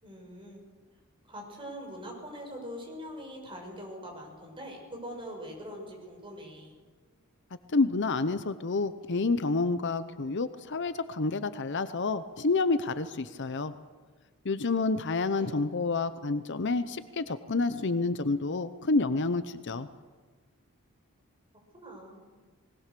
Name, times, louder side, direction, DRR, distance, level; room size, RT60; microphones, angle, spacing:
voice 1, 0.0-0.6 1.2-6.7 15.2-15.6 21.7-22.3, equal, 25° right, 1 dB, 6.1 m, -43 dB
voice 2, 7.7-13.7 14.4-19.9, left 3 dB, 55° left, 12 dB, 0.8 m, -29 dB
21.0 x 19.5 x 6.8 m, 1.4 s
head